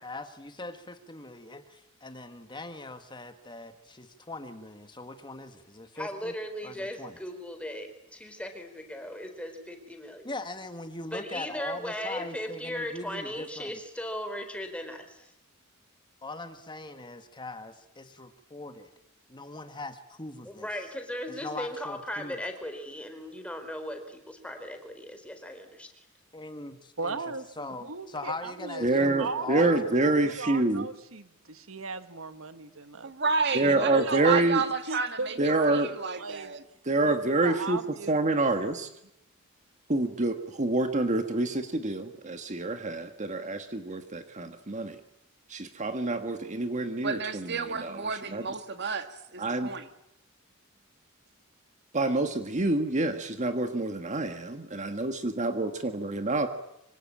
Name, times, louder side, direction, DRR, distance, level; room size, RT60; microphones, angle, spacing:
voice 1, 0.0-6.3 6.6-7.2 10.2-13.8 16.2-18.9 19.3-20.7 21.4-22.4 26.3-27.2 27.6-30.3, left 2 dB, 20° left, 8 dB, 1.8 m, -41 dB
voice 2, 6.0-10.3 11.1-15.3 20.4-25.9, left 1 dB, 5° left, 6 dB, 4.1 m, -37 dB
voice 3, 27.0-27.5 27.8-29.9 30.2-33.1 33.6-36.5 37.0-38.5, right 4 dB, 75° right, 10 dB, 1.6 m, -37 dB
voice 4, 28.8-30.9 33.5-34.6 35.4-35.9 36.8-37.8 38.1-38.9 39.9-45.0 45.5-48.0 48.3-48.4 49.4-49.7 51.9-56.5, right 2 dB, 35° right, 7 dB, 1.5 m, -27 dB
voice 5, 33.0-35.3 35.7-36.6 47.0-49.9, right 5 dB, 55° right, 8 dB, 2.0 m, -31 dB
25.0 x 24.5 x 8.8 m, 0.82 s
head